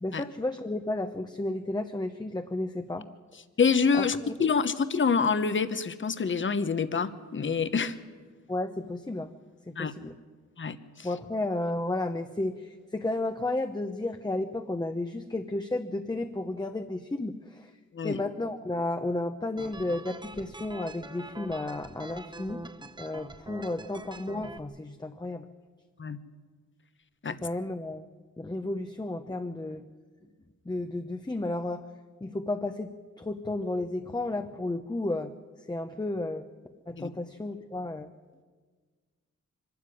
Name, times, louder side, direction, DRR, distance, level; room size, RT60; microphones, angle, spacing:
voice 1, 0.0-3.1 4.0-4.3 8.5-9.3 9.7-10.1 11.0-17.7 18.0-22.6 23.0-25.5 27.4-28.0 28.4-29.8 30.7-31.8 32.2-32.9 33.2-35.3 35.7-36.4 36.9-38.1, left 2 dB, 15° left, 6 dB, 0.9 m, -32 dB
voice 2, 3.6-7.9 9.8-9.9 10.6-11.1 17.9-18.2 26.0-26.2 27.2-27.4 37.0-37.1, left 5 dB, 40° left, 12 dB, 1.0 m, -27 dB
sound 1, 19.6-24.6, right 2 dB, 15° right, 0.9 m, -44 dB
24.0 x 13.0 x 9.9 m, 1.5 s
wide cardioid pair, 100°, 29 cm